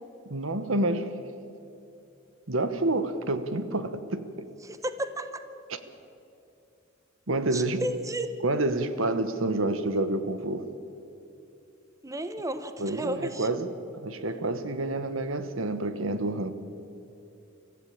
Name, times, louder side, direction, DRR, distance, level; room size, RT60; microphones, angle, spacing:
voice 1, 0.3-1.1 2.5-4.5 7.3-7.8 8.4-10.7 12.8-13.7 14.0-16.5, right 2 dB, 75° right, 1.3 m, -28 dB
voice 2, 4.6-5.4 7.5-8.3 12.0-13.5, right 1 dB, 15° right, 1.0 m, -33 dB
24.5 x 15.0 x 8.7 m
head